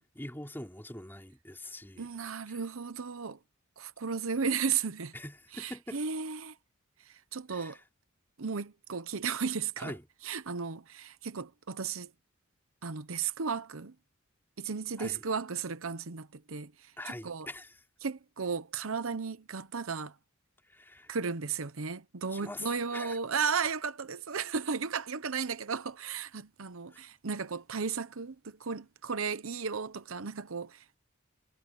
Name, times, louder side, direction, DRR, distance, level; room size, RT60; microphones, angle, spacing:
voice 1, 0.2-2.1 2.5-2.6 5.1-6.0 7.5-7.8 9.8-10.0 15.0-15.2 17.0-17.8 20.7-21.1 22.3-23.2 26.9-27.0, left 1 dB, 10° left, 3.6 m, -43 dB
voice 2, 2.0-3.4 3.8-5.1 5.6-6.5 7.3-7.8 8.4-9.9 10.3-12.1 12.8-13.9 14.6-16.7 17.2-17.5 18.0-20.1 21.1-30.8, right 5 dB, 75° right, 0.9 m, -34 dB
head